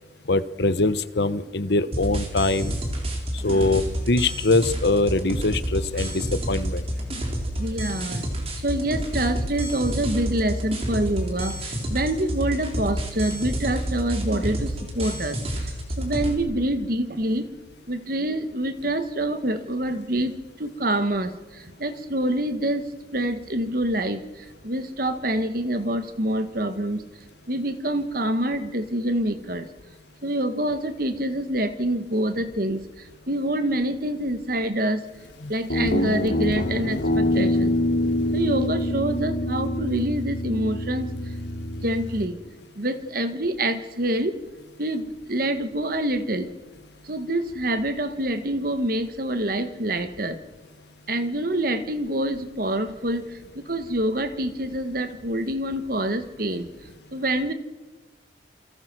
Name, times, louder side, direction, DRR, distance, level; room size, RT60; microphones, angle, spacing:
voice 1, 0.3-2.8 3.4-6.8 35.4-35.5, left 2 dB, 60° left, 14 dB, 1.0 m, -23 dB
sound 1, 1.9-16.3, equal, 30° right, 4.1 m, -29 dB
voice 2, 7.6-8.3 8.6-17.5 17.9-27.1 27.5-29.7 30.2-35.1 35.5-37.8 38.3-41.1 41.8-42.4 42.7-44.3 44.8-46.5 47.0-50.4 51.1-53.4 53.6-56.7 57.1-57.5, right 1 dB, 50° right, 10 dB, 1.6 m, -26 dB
Guitar, 35.7-42.3, left 1 dB, 80° left, 2.9 m, -25 dB
28.5 x 25.0 x 6.2 m, 1.3 s
head